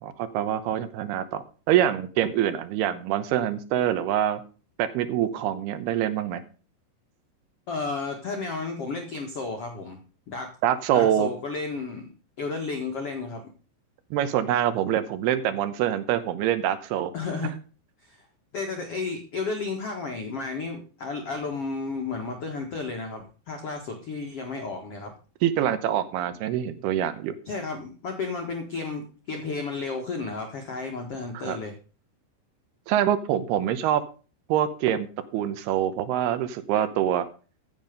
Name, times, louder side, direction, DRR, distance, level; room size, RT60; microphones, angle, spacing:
voice 1, 0.0-4.4 4.8-6.4 10.6-11.3 14.1-17.1 25.4-27.3 31.3-31.6 32.9-34.0 34.5-35.1 35.3-37.2, right 11 dB, 75° right, 12 dB, 2.5 m, -25 dB
voice 2, 7.7-10.0 10.3-10.5 10.9-12.1 12.4-13.4 17.1-17.5 18.0-18.3 18.5-25.1 27.4-31.7, left 4 dB, 85° left, 3 dB, 1.3 m, -32 dB
15.0 x 7.5 x 5.2 m, 0.37 s
omnidirectional pair, 5.4 m